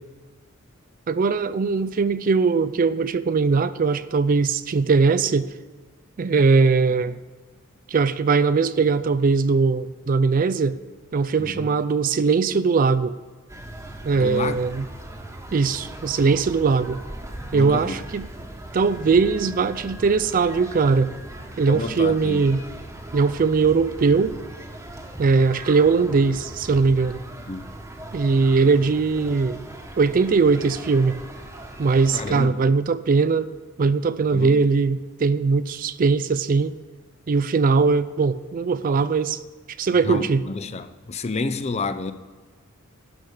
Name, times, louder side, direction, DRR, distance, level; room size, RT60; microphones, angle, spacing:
voice 1, 1.1-5.5 6.2-7.2 7.9-10.8 11.1-13.1 14.0-14.8 15.5-17.0 17.5-18.3 18.7-21.1 21.6-22.6 23.1-24.4 25.2-27.2 28.1-29.6 30.0-31.2 31.8-33.5 33.8-36.7 37.3-39.4 39.8-40.4, right 4 dB, 40° right, 0.4 m, -20 dB
voice 2, 11.4-11.8 14.1-14.6 17.5-18.0 21.7-22.4 27.5-27.7 32.1-32.6 34.2-34.6 40.0-42.1, left 3 dB, 30° left, 0.5 m, -30 dB
sound 1, 13.5-32.5, right 1 dB, 15° right, 1.2 m, -39 dB
12.0 x 5.0 x 8.5 m
head